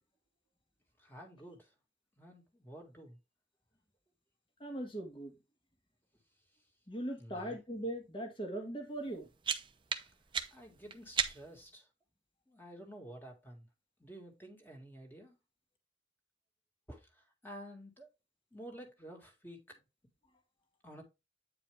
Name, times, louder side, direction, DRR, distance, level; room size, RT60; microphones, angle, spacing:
voice 1, 1.0-1.7 2.2-3.2 7.2-7.6 10.5-11.9 12.5-13.7 14.0-15.3 16.9-17.0 17.4-18.1 18.5-19.6 20.8-21.0, equal, 10° left, 1.9 m, -51 dB
voice 2, 4.6-5.3 6.9-9.3, right 1 dB, 30° left, 1.7 m, -40 dB
sound 1, 9.0-11.7, right 7 dB, 25° right, 0.8 m, -38 dB
9.0 x 4.8 x 3.3 m
head